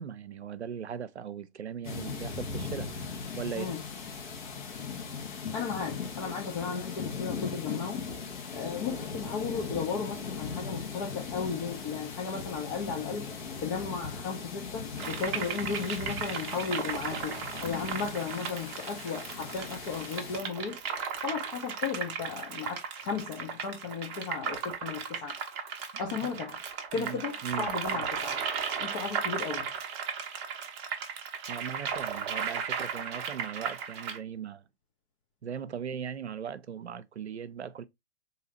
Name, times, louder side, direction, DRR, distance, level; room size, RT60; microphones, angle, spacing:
voice 1, 0.0-3.1 3.4-3.7 26.1-26.4 26.9-27.7 31.5-34.6 35.4-37.8, right 7 dB, 85° right, 0.5 m, -39 dB
sound 1, 1.8-20.4, left 5 dB, 45° left, 1.2 m, -39 dB
voice 2, 5.5-8.0 8.5-13.3 13.6-20.8 21.2-25.4 26.0-26.6 26.9-28.4 28.8-29.7, left 5 dB, 30° left, 0.7 m, -35 dB
sound 2, 15.0-34.2, right 7 dB, 25° right, 0.7 m, -36 dB
4.0 x 2.8 x 2.8 m
figure-of-eight pair, 115°, 32 cm